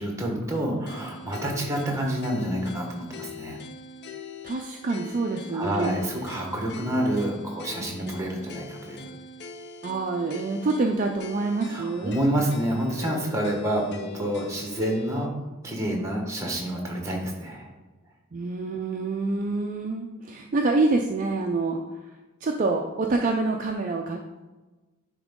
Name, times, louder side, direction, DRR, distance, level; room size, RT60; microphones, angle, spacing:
voice 1, 0.0-3.6 5.5-9.1 11.6-15.4 15.6-17.7, right 1 dB, 15° right, 0 dB, 1.2 m, -28 dB
sound 1, 0.9-15.3, left 4 dB, 50° left, 0.5 m, -42 dB
voice 2, 4.4-5.9 8.0-8.2 9.8-12.1 18.3-21.8 22.4-24.4, right 3 dB, 35° right, 2 dB, 0.4 m, -26 dB
9.7 x 3.5 x 3.7 m, 1.2 s
head